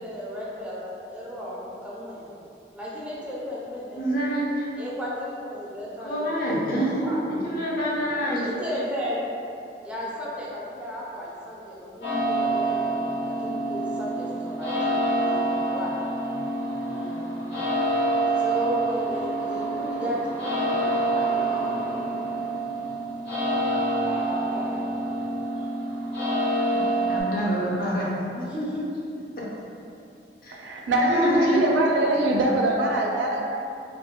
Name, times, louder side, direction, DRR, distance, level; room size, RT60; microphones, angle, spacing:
voice 1, 0.0-2.3 2.7-4.1 4.8-6.4 6.9-7.2 8.0-9.4 9.8-15.9 16.9-17.4 18.4-22.0 23.4-24.9 25.6-25.7 28.3-28.9, equal, 5° right, -7 dB, 0.5 m, -35 dB
voice 2, 3.9-4.7 6.0-8.9 27.1-28.1 28.4-28.5 30.4-30.6 30.9-31.6, equal, 55° left, -5 dB, 0.6 m, -27 dB
sound 1, 12.0-27.2, right 1 dB, 70° left, 0.9 m, -27 dB
voice 3, 30.5-33.4, right 1 dB, 85° right, -1 dB, 0.4 m, -22 dB
2.5 x 2.1 x 3.6 m, 2.6 s
head